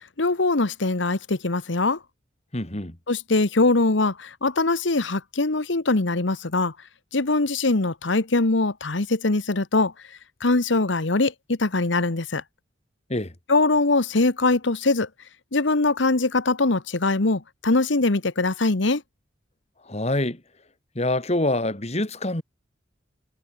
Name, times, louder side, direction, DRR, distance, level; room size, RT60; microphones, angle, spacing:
voice 1, 0.2-2.0 3.1-6.7 7.1-9.9 10.4-12.4 13.5-15.1 15.5-19.0, left 2 dB, 75° left, 1.4 m, -22 dB
voice 2, 2.5-3.0 13.1-13.3 19.9-20.4 20.9-22.4, left 1 dB, 35° left, 2.6 m, -25 dB
head